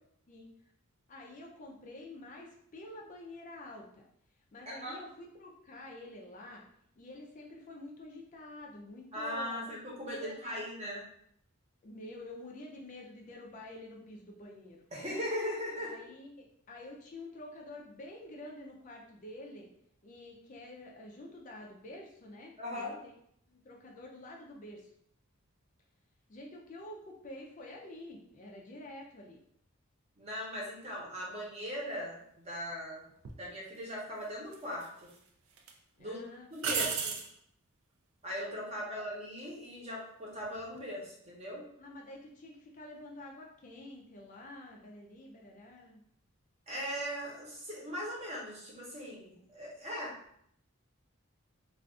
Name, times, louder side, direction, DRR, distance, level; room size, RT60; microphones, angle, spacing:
voice 1, 1.1-4.0 4.5-6.6 7.0-9.7 10.1-10.6 11.8-14.8 15.8-19.7 20.0-23.1 23.5-24.9 26.3-29.4 36.0-36.5 38.8-38.9 41.8-46.0, left 1 dB, 35° left, 0 dB, 0.4 m, -48 dB
voice 2, 4.7-5.0 9.1-11.0 14.9-16.1 22.6-22.9 30.2-33.0 33.4-35.1 36.0-36.3 36.5-37.1 38.2-41.6 46.7-50.1, equal, 30° right, -3 dB, 0.8 m, -39 dB
sound 1, 33.2-33.4 34.5-35.2 35.6-35.7 36.6-37.3 40.4-40.8, right 5 dB, 75° right, 0.4 m, -34 dB
2.4 x 2.3 x 3.6 m, 0.70 s
head